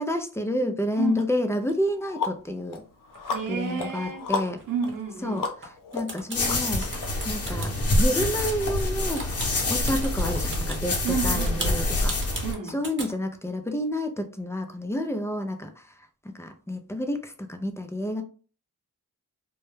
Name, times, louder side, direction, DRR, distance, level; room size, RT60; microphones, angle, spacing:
voice 1, 0.0-2.8 3.5-4.6 5.2-5.4 5.9-6.8 7.2-7.7 8.0-9.2 9.7-11.0 11.2-12.1 12.7-15.9 16.2-18.2, left 1 dB, 10° left, 0.4 m, -29 dB
sound 1, 1.2-1.3 1.7-7.1, left 5 dB, 70° left, 0.6 m, -34 dB
sound 2, 3.1-5.7 5.9-10.8 11.3-13.1, right 2 dB, 35° right, 0.8 m, -38 dB
voice 2, 3.3-4.3 4.7-5.4 11.0-11.9 12.4-12.8, right 6 dB, 70° right, 0.8 m, -31 dB
sound 3, 6.3-12.5, left 2 dB, 45° left, 0.8 m, -26 dB
2.2 x 2.0 x 3.1 m
cardioid pair, 65°, 34 cm